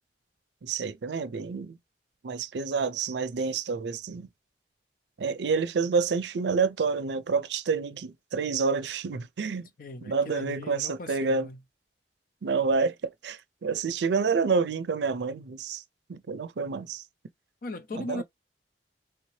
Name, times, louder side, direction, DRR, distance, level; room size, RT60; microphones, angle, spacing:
voice 1, 0.6-1.8 2.2-4.3 5.2-9.7 10.0-11.5 12.4-15.8 16.1-17.0 17.9-18.2, right 5 dB, 75° right, 0.5 m, -28 dB
voice 2, 9.8-11.6 17.6-18.2, left 2 dB, 50° left, 0.5 m, -38 dB
3.3 x 2.8 x 3.1 m
head